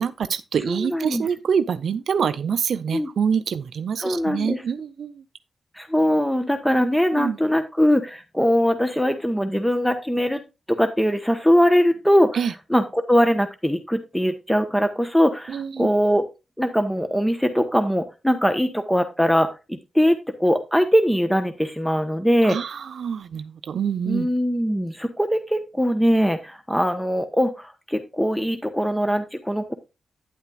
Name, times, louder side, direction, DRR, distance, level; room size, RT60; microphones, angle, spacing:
voice 1, 0.0-5.2 7.1-7.4 12.3-12.5 15.5-15.9 22.4-24.3, right 7 dB, 75° right, 0.5 m, -26 dB
voice 2, 0.7-1.2 2.9-3.1 4.0-4.6 5.8-10.4 10.7-12.4 12.7-16.2 16.6-22.6 24.1-29.7, equal, 5° left, 1.1 m, -21 dB
9.9 x 8.0 x 2.4 m
supercardioid pair, 45°, 0 cm